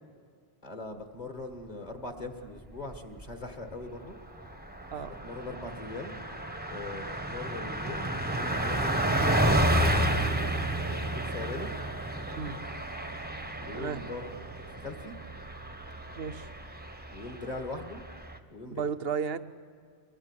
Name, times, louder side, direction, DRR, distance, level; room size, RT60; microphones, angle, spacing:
voice 1, 0.6-4.2 5.0-6.2 6.7-9.5 9.8-11.7 13.6-15.1 17.1-18.0 18.5-18.8, left 2 dB, 40° left, 6 dB, 1.7 m, -41 dB
Car passing by, 2.7-3.3 3.7-3.8 4.1-18.4, right 1 dB, 10° right, 0.9 m, -31 dB
voice 2, 16.2-16.5 18.7-19.4, right 6 dB, 60° right, 12 dB, 1.0 m, -33 dB
23.0 x 18.0 x 9.9 m, 2.1 s
omnidirectional pair, 1.2 m